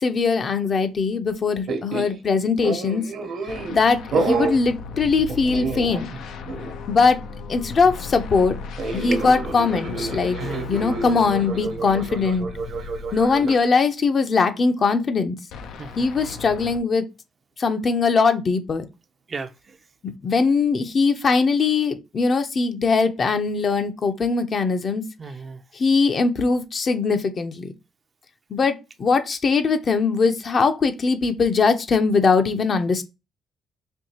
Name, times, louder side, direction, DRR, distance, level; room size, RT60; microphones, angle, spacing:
voice 1, 0.0-3.0 3.7-6.1 6.9-7.2 7.5-8.6 8.9-10.4 10.7-12.5 13.1-15.4 16.0-17.1 17.6-18.8 20.0-25.0 25.7-27.7 28.5-33.0, left 4 dB, 45° left, 0.7 m, -21 dB
sound 1, 1.7-2.2 2.6-3.8 4.1-4.6 5.3-6.2 6.5-6.7 8.8-13.6, right 4 dB, 65° right, 1.0 m, -29 dB
sound 2, 3.5-13.7 15.5-16.8, left 4 dB, 80° left, 0.6 m, -36 dB
voice 2, 10.1-10.7 15.8-15.9 19.3-19.8 25.2-25.6, right 4 dB, 40° right, 0.5 m, -33 dB
4.5 x 2.8 x 2.8 m
cardioid pair, 90°, 0 cm